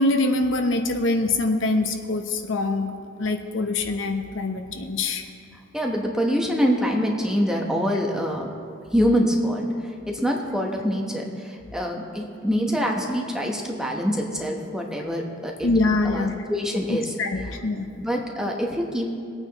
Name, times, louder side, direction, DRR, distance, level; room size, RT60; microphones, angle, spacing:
voice 1, 0.0-2.9 3.2-5.2 15.6-16.3 16.9-17.9, left 2 dB, 65° left, 5 dB, 0.9 m, -24 dB
voice 2, 5.7-8.5 8.9-9.7 10.1-15.7 16.0-17.1 18.0-19.1, equal, 5° right, 0 dB, 1.1 m, -25 dB
23.0 x 8.9 x 3.0 m, 2.4 s
head